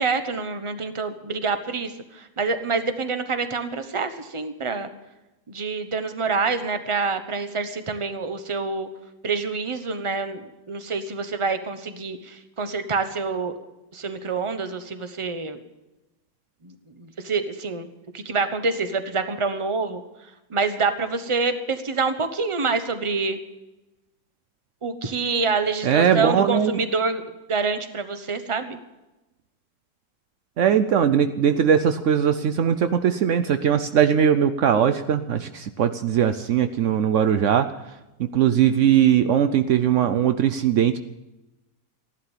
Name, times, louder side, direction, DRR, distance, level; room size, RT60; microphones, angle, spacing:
voice 1, 0.0-4.9 5.5-8.9 9.2-13.5 13.9-15.6 16.6-17.9 18.1-20.0 20.5-23.4 24.8-27.2 27.5-28.8, right 4 dB, 25° right, 10 dB, 0.7 m, -26 dB
voice 2, 25.8-26.8 30.6-37.7 38.3-41.0, right 8 dB, 90° right, 11 dB, 0.6 m, -20 dB
14.5 x 11.5 x 7.3 m, 1.0 s
omnidirectional pair, 2.0 m